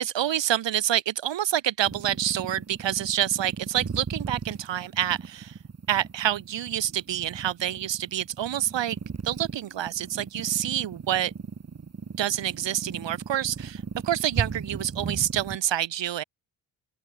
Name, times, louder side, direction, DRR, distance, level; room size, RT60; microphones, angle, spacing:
voice 1, 0.0-5.5 5.9-9.0 9.2-11.3 12.2-16.2, right 11 dB, 65° right, 4.7 m, -27 dB
sound 1, 1.8-15.6, right 5 dB, 30° right, 2.1 m, -36 dB
open air
supercardioid pair, 60°, 47 cm